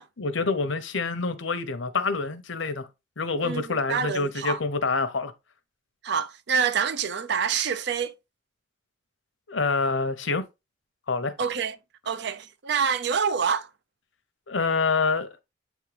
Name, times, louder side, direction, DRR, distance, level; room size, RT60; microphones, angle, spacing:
voice 1, 0.2-2.9 3.2-5.3 9.5-10.4 11.1-11.3 14.5-15.4, left 4 dB, 70° left, 0.9 m, -26 dB
voice 2, 3.9-4.6 6.0-8.1 11.4-11.8 12.1-13.7, right 6 dB, 55° right, 0.5 m, -26 dB
8.1 x 3.6 x 3.3 m
head